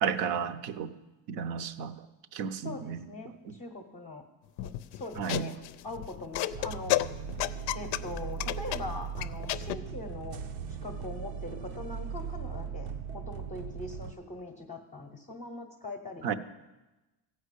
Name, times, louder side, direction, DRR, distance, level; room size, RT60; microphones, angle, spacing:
voice 1, 0.0-0.9 1.3-2.0 2.3-3.1 3.5-3.6 5.2-5.5 16.2-16.3, right 7 dB, 55° right, 12 dB, 0.7 m, -32 dB
voice 2, 2.6-4.2 4.6-7.1 7.7-16.3, left 2 dB, 15° left, 2 dB, 0.7 m, -42 dB
sound 1, 4.6-9.8, left 15 dB, 65° left, 0.5 m, -32 dB
sound 2, 6.5-14.1, right 7 dB, 85° right, 1.0 m, -39 dB
15.0 x 5.4 x 8.2 m, 1.1 s
cardioid pair, 175°, 46 cm